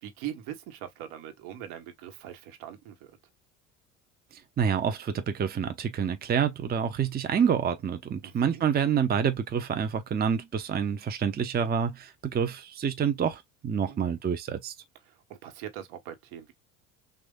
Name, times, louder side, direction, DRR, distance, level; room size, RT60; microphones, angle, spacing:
voice 1, 0.0-3.1 8.2-8.6 13.8-14.2 15.0-16.5, right 11 dB, 60° right, 1.3 m, -42 dB
voice 2, 4.6-14.7, right 7 dB, 20° right, 0.7 m, -27 dB
6.1 x 2.5 x 2.4 m
hypercardioid pair, 65°, 42 cm